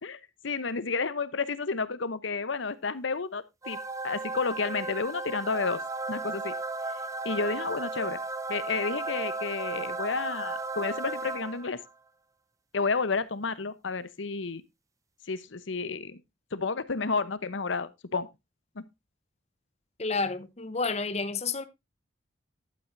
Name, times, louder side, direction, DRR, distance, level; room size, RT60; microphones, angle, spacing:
voice 1, 0.0-5.8 6.1-6.5 7.2-8.2 8.5-11.8 12.7-14.6 15.2-16.2 16.5-18.3 18.7-18.9, left 4 dB, 70° left, 0.9 m, -31 dB
sound 1, 3.6-11.9, right 3 dB, 15° right, 0.7 m, -35 dB
voice 2, 20.0-21.6, left 4 dB, 35° left, 0.9 m, -30 dB
11.5 x 8.8 x 2.6 m
head